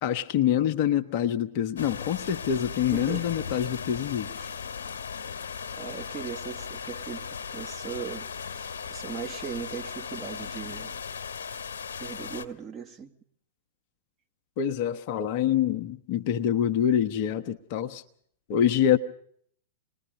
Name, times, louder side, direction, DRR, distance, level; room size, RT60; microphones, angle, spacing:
voice 1, 0.0-4.3 14.6-18.0 18.5-19.0, left 10 dB, 45° left, 1.1 m, -26 dB
sound 1, 1.8-12.4, left 6 dB, 60° left, 1.5 m, -37 dB
voice 2, 2.9-3.3 4.4-4.5 5.7-11.0 12.0-13.1, right 7 dB, 25° right, 2.1 m, -39 dB
26.5 x 20.5 x 5.4 m
figure-of-eight pair, 100°, 0 cm